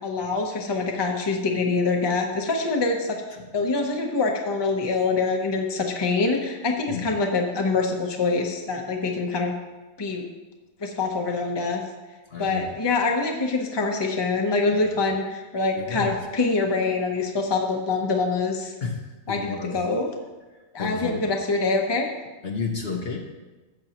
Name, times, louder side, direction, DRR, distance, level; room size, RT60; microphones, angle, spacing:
voice 1, 0.0-3.2 3.5-9.5 10.0-10.2 10.8-11.8 12.4-18.7 19.3-20.1 20.7-22.1, left 3 dB, 20° left, 2 dB, 0.8 m, -25 dB
voice 2, 12.3-12.7 15.8-16.1 18.8-19.8 20.8-21.3 22.4-23.2, left 5 dB, 50° left, 1 dB, 1.0 m, -31 dB
13.5 x 7.6 x 3.0 m, 1.2 s
omnidirectional pair, 1.5 m